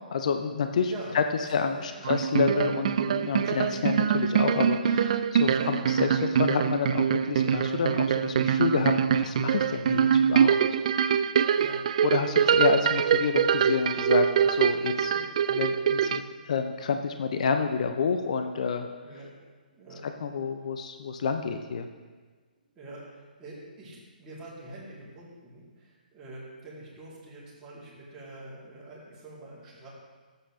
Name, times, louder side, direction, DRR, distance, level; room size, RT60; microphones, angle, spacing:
voice 1, 0.1-1.2 1.5-10.6 12.0-18.9 20.2-21.9, left 6 dB, 45° left, 7 dB, 0.6 m, -29 dB
voice 2, 0.9-1.9 5.5-5.7 11.5-11.8 12.4-12.6 19.0-19.3 19.7-20.0 22.7-29.9, right 2 dB, 15° right, -8 dB, 3.0 m, -45 dB
sound 1, 2.0-16.2, right 8 dB, 45° right, 0.3 m, -24 dB
14.0 x 8.2 x 3.2 m, 1.4 s
figure-of-eight pair, 130°, 5 cm